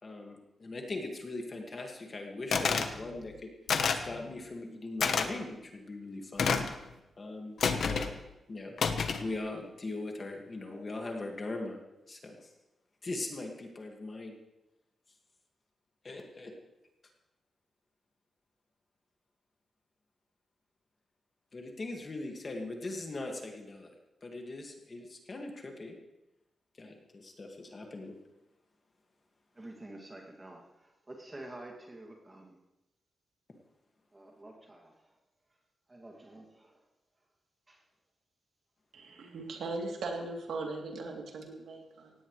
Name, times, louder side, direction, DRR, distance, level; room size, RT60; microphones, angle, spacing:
voice 1, 0.0-3.5 3.9-6.6 7.2-8.1 8.5-8.7 9.2-11.8 12.1-12.5 13.0-14.4 16.0-16.5 21.5-23.9 24.2-26.0 26.8-28.2, left 2 dB, 30° left, 1 dB, 2.0 m, -40 dB
computer mouse falling on the table, 2.5-2.9 3.7-4.1 5.0-5.3 6.4-6.8 7.6-8.1 8.8-9.3, left 5 dB, 60° left, 1.1 m, -28 dB
voice 2, 29.6-32.6 34.1-34.9 35.9-36.8 37.7-37.8, right 1 dB, 15° right, 1 dB, 2.4 m, -49 dB
voice 3, 38.9-42.1, right 3 dB, 75° right, 0 dB, 3.0 m, -39 dB
18.0 x 17.0 x 3.3 m, 0.93 s
wide cardioid pair, 175°, 0 cm